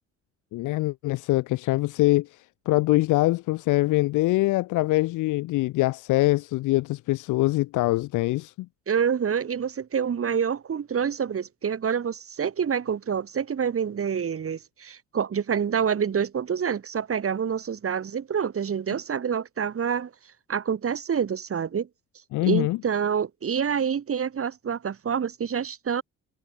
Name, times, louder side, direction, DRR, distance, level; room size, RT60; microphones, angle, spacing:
voice 1, 0.5-8.7 22.3-22.8, left 19 dB, 85° left, 0.6 m, -24 dB
voice 2, 8.9-20.1 20.5-21.9 22.4-26.0, right 7 dB, 50° right, 4.3 m, -27 dB
cardioid pair, 90°, 30 cm